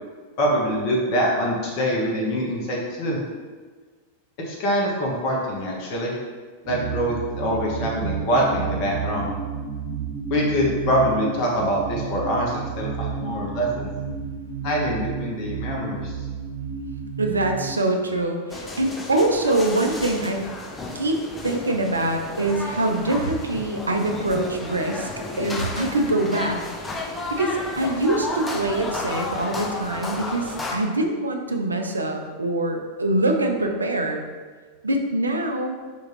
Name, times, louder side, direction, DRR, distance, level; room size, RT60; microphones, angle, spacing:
voice 1, 0.4-3.2 4.5-6.1 6.7-9.3 10.3-13.9 14.6-16.1, equal, 45° left, -2 dB, 0.7 m, -24 dB
sound 1, 6.6-17.7, right 6 dB, 60° right, 1.0 m, -31 dB
voice 2, 17.2-20.4 20.9-21.2 21.4-25.1 25.4-26.6 27.4-34.2 34.8-35.8, right 2 dB, 75° right, 4 dB, 0.4 m, -24 dB
sound 2, 18.5-30.8, left 2 dB, 15° left, 0.4 m, -33 dB
4.4 x 2.3 x 3.0 m, 1.4 s
figure-of-eight pair, 90°, 0 cm